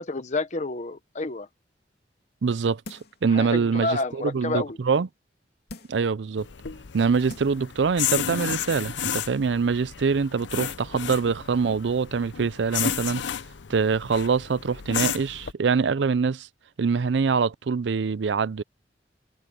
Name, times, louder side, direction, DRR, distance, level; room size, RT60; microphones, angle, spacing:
voice 1, 0.0-1.5 3.3-4.8, left 2 dB, 40° left, 1.0 m, -29 dB
voice 2, 2.4-5.1 5.9-6.5 6.9-13.2 13.7-16.5 16.8-18.6, right 5 dB, 80° right, 0.5 m, -24 dB
sound 1, 2.8-3.3 3.8-3.9 5.7-6.1 6.8-6.9 7.3-7.7 8.1-8.2, left 2 dB, 60° left, 2.8 m, -43 dB
sound 2, 6.4-15.5, left 9 dB, 85° left, 0.7 m, -32 dB
head